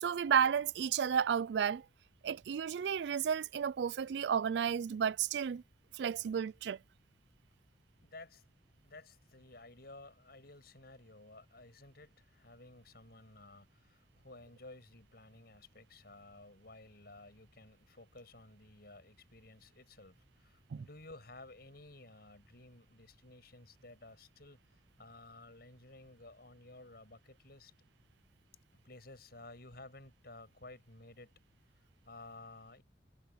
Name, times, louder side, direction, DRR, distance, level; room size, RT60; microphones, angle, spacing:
voice 1, 0.0-1.8 2.2-5.6 5.9-6.8 20.7-20.9, right 7 dB, 70° right, 0.3 m, -32 dB
voice 2, 8.0-8.5 8.8-24.6 25.0-27.7 28.7-31.3 32.1-32.8, left 2 dB, 60° left, 6.9 m, -54 dB
head